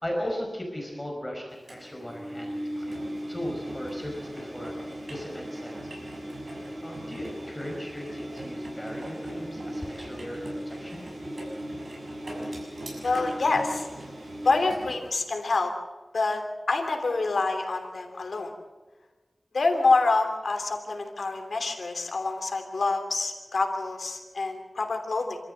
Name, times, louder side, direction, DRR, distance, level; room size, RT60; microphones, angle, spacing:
voice 1, 0.0-5.9 6.8-11.0, equal, 15° left, 0 dB, 5.1 m, -37 dB
Engine, 1.7-15.1, equal, 70° right, 7.1 m, -37 dB
voice 2, 13.0-13.9 14.4-15.7 16.1-16.4 16.7-18.5 19.5-25.4, left 3 dB, 85° left, 4 dB, 3.0 m, -26 dB
27.5 x 14.0 x 7.9 m, 1.2 s
wide cardioid pair, 60°, 0 cm